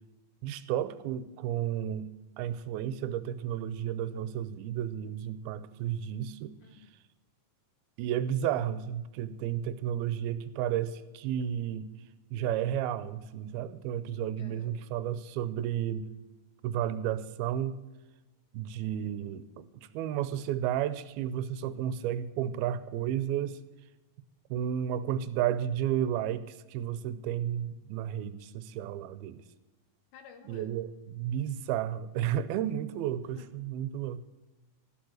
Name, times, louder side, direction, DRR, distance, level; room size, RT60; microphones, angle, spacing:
voice 1, 0.4-2.1 2.4-6.5 8.0-11.9 12.3-16.0 16.6-17.7 18.5-23.6 24.5-29.4 30.5-34.2, right 10 dB, 90° right, 14 dB, 2.6 m, -32 dB
voice 2, 6.6-7.0 14.4-14.8 30.1-30.7 33.4-33.5, left 7 dB, 75° left, 9 dB, 1.8 m, -53 dB
13.5 x 12.0 x 6.4 m, 1.1 s
omnidirectional pair, 4.4 m